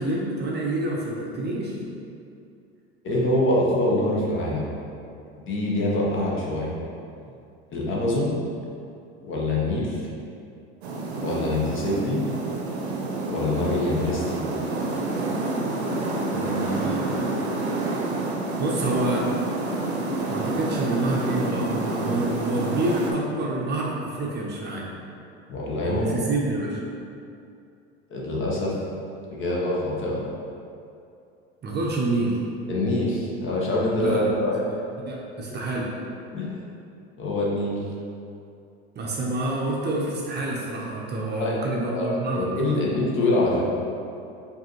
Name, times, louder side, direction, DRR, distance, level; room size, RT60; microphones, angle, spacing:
voice 1, 0.0-1.8 16.3-17.4 18.6-19.3 20.3-24.9 25.9-26.8 31.6-32.4 34.0-34.4 35.1-35.9 39.0-42.7, right 2 dB, 30° right, -3 dB, 0.7 m, -28 dB
voice 2, 3.0-4.7 5.5-6.7 7.7-8.4 9.2-10.1 11.2-12.2 13.3-14.4 25.5-26.1 28.1-28.7 29.3-30.3 32.7-34.6 35.5-35.6 36.3-36.6 37.2-37.8 41.4-43.6, left 1 dB, 40° left, -4 dB, 1.0 m, -25 dB
sound 1, 10.8-23.1, right 2 dB, 80° right, 0.6 m, -28 dB
4.8 x 2.7 x 2.9 m, 2.6 s
hypercardioid pair, 75°, 32 cm